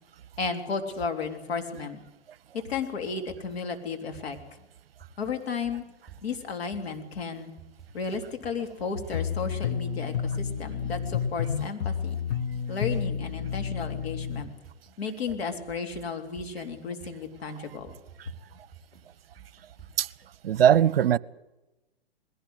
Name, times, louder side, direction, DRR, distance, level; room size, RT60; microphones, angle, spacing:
voice 1, 0.4-2.0 2.5-4.4 5.2-5.8 6.2-7.5 7.9-12.2 12.7-14.5 15.0-17.9, left 5 dB, 70° left, 5 dB, 3.7 m, -33 dB
sound 1, 2.7-20.3, right 7 dB, ahead, 6.3 m, -52 dB
sound 2, 9.1-14.4, left 7 dB, 40° left, 1.3 m, -30 dB
voice 2, 20.4-21.2, right 9 dB, 65° right, 23 dB, 0.8 m, -20 dB
21.0 x 17.5 x 8.1 m, 1.0 s
hypercardioid pair, 135°, 32 cm